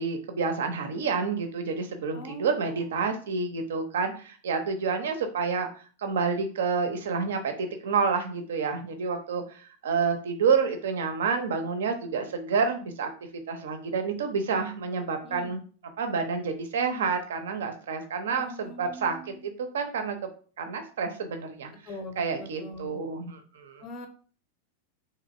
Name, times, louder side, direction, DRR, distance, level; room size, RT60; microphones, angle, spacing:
voice 1, 0.0-5.7 6.0-13.1 13.5-15.6 16.0-19.2 19.4-20.2 20.6-21.7 22.2-23.8, right 5 dB, 60° right, 7 dB, 0.5 m, -29 dB
voice 2, 2.1-2.9 15.2-15.5 18.3-19.4 21.9-23.0 23.8-24.1, left 1 dB, 30° left, 6 dB, 0.6 m, -42 dB
3.1 x 2.8 x 2.5 m, 0.42 s
figure-of-eight pair, 90°, 0 cm